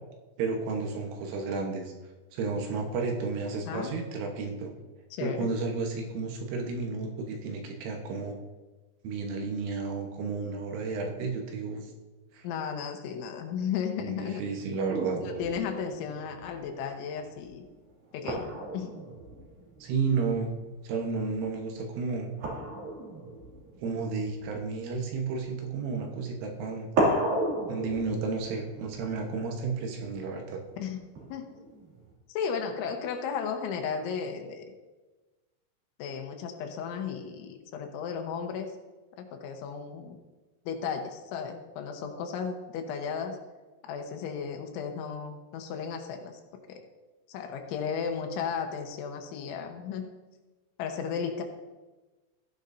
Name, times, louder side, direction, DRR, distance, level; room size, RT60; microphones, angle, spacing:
voice 1, 0.4-1.8 2.3-4.7 5.2-8.4 9.0-11.9 12.3-12.5 14.0-15.2 19.8-20.5 20.8-22.3 23.8-26.9 27.7-30.6, right 4 dB, 75° right, 2 dB, 3.5 m, -32 dB
voice 2, 5.1-5.5 12.4-14.4 15.2-17.7 18.1-18.5 18.7-18.9 30.8-31.4 32.3-34.7 36.0-38.7 39.2-40.2 40.7-43.4 43.8-46.4 46.7-46.8 47.3-50.1 50.8-51.4, left 6 dB, 80° left, 4 dB, 3.1 m, -34 dB
sound 1, 14.9-20.8 21.0-21.5 22.4-25.6 26.5-26.6 26.9-30.2 31.1-32.1, right 1 dB, 50° right, 3.7 m, -35 dB
15.0 x 10.5 x 2.7 m, 1.2 s
omnidirectional pair, 5.9 m